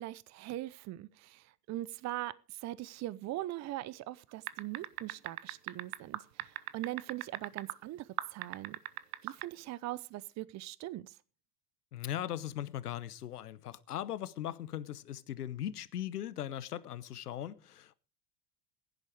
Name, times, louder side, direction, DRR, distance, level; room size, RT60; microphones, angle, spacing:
voice 1, 0.0-8.8 9.2-11.2, right 15 dB, 40° right, 0.7 m, -41 dB
sound 1, 4.5-7.7 8.2-9.5, right 15 dB, 70° right, 1.0 m, -38 dB
voice 2, 11.9-17.9, left 11 dB, 85° left, 1.0 m, -39 dB
16.0 x 11.0 x 4.8 m
hypercardioid pair, 80°, 45 cm